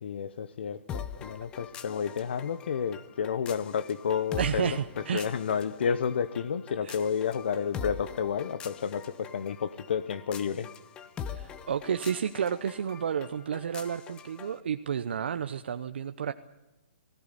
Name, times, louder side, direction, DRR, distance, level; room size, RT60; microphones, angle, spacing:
voice 1, 0.0-4.8 5.1-10.7, left 7 dB, 65° left, 0.9 m, -31 dB
sound 1, 0.9-14.6, left 7 dB, 15° left, 0.8 m, -43 dB
voice 2, 4.4-5.3 6.8-7.0 11.3-16.3, right 8 dB, 65° right, 0.9 m, -31 dB
19.0 x 17.0 x 10.0 m
hypercardioid pair, 160°, 6 cm